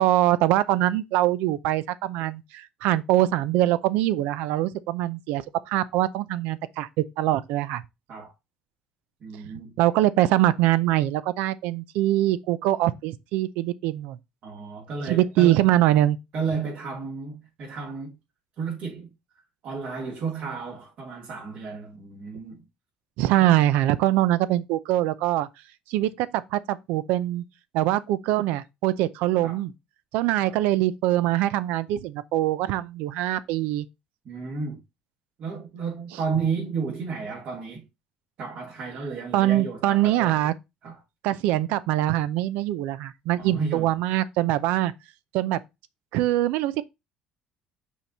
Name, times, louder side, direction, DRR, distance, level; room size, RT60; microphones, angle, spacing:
voice 1, 0.0-7.8 9.8-14.2 15.1-16.2 23.2-25.5 25.9-27.4 27.7-29.7 30.1-33.9 39.3-40.5 41.2-44.9 45.3-45.6 46.1-46.8, right 14 dB, 85° right, 0.6 m, -23 dB
voice 2, 9.2-9.7 14.4-15.7 16.3-18.2 18.6-19.1 19.6-22.6 23.4-23.5 29.4-29.6 30.4-30.5 34.2-34.8 35.4-37.8 38.4-40.3 40.8-41.0 43.4-43.9, right 5 dB, 55° right, 2.9 m, -32 dB
5.7 x 4.6 x 4.1 m
cardioid pair, 120°, 3 cm